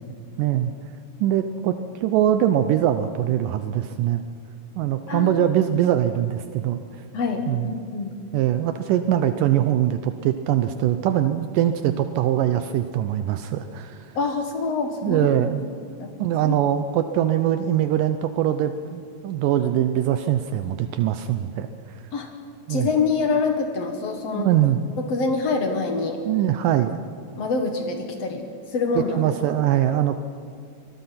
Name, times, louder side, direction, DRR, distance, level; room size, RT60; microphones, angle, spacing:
voice 1, 0.4-0.7 1.2-4.2 4.8-7.0 7.5-7.7 8.3-14.2 15.0-15.6 16.2-21.7 22.7-22.9 24.3-24.8 26.3-27.0 29.0-30.2, right 11 dB, 90° right, 9 dB, 1.9 m, -22 dB
voice 2, 5.1-5.4 7.1-8.2 14.2-15.3 16.0-16.1 16.4-16.6 22.1-22.3 22.7-24.5 25.0-26.2 27.4-29.4, left 4 dB, 55° left, 4 dB, 2.0 m, -25 dB
24.5 x 20.5 x 5.8 m, 2.3 s
omnidirectional pair, 4.7 m